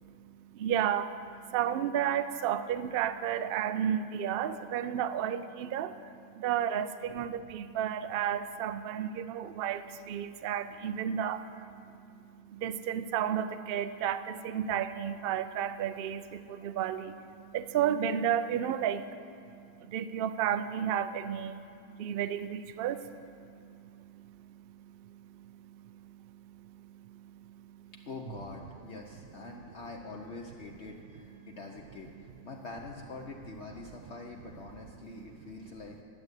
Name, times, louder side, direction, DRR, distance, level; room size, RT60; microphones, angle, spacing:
voice 1, 0.0-27.9 31.4-31.6, right 9 dB, 75° right, 12 dB, 0.5 m, -33 dB
voice 2, 7.1-7.4 28.1-36.0, left 3 dB, 55° left, 0 dB, 1.0 m, -45 dB
12.0 x 8.0 x 8.1 m, 2.6 s
omnidirectional pair, 1.6 m